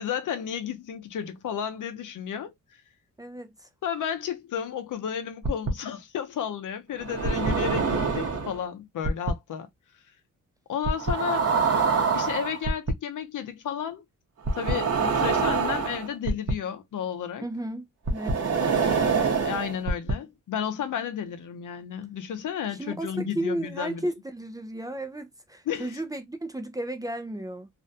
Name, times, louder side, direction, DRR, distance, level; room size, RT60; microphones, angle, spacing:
voice 1, 0.0-2.5 3.8-9.7 10.7-11.5 12.1-14.0 14.5-17.5 19.4-24.0 25.7-26.0, left 8 dB, 75° left, 0.6 m, -32 dB
voice 2, 3.2-3.7 17.4-19.2 22.8-27.7, right 1 dB, 10° right, 0.4 m, -34 dB
sound 1, 5.4-5.7 7.0-8.6 9.0-9.3 10.8-12.9 14.5-16.5 18.1-20.1, right 5 dB, 50° right, 0.9 m, -25 dB
2.6 x 2.2 x 2.5 m
cardioid pair, 75°, 31 cm